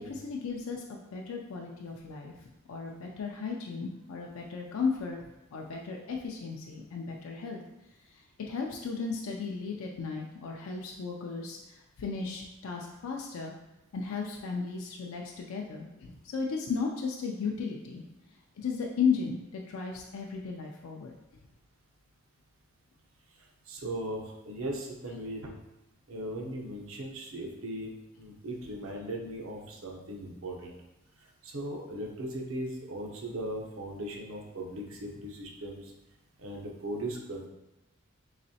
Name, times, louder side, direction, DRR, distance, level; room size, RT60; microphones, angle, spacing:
voice 1, 0.0-2.3 2.7-5.2 5.5-7.6 8.2-13.5 13.9-18.1 18.6-21.1, left 5 dB, 85° left, 0 dB, 0.4 m, -35 dB
voice 2, 23.4-25.5 26.1-30.8 31.2-35.9 36.4-37.5, right 1 dB, 75° right, -1 dB, 0.7 m, -38 dB
4.0 x 3.0 x 2.7 m, 0.97 s
head